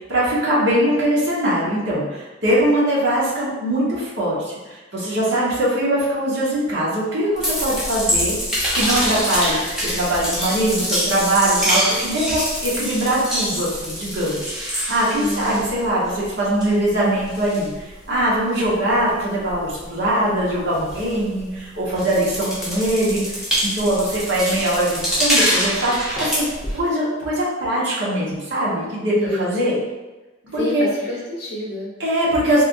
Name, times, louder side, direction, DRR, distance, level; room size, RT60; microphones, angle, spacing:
voice 1, 0.0-17.7 18.1-26.4 26.7-29.7 30.5-30.9 32.0-32.6, right 1 dB, 70° right, -7 dB, 1.2 m, -21 dB
sound 1, 7.3-16.3 16.6-21.6 21.9-26.8, equal, 5° right, 0.8 m, -25 dB
voice 2, 15.1-15.5 29.1-29.6 30.5-31.9, left 1 dB, 60° left, -5 dB, 0.7 m, -28 dB
3.4 x 2.4 x 2.6 m, 1.1 s
head